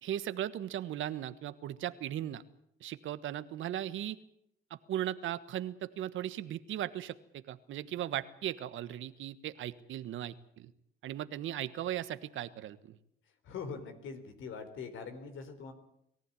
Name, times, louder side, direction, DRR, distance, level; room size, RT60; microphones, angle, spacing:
voice 1, 0.0-2.4 2.8-4.2 4.7-10.7 11.0-13.0, right 11 dB, 80° right, 13 dB, 1.4 m, -37 dB
voice 2, 13.4-15.7, left 5 dB, 80° left, 8 dB, 4.2 m, -43 dB
22.5 x 15.0 x 9.9 m, 0.75 s
cardioid pair, 90°, 20 cm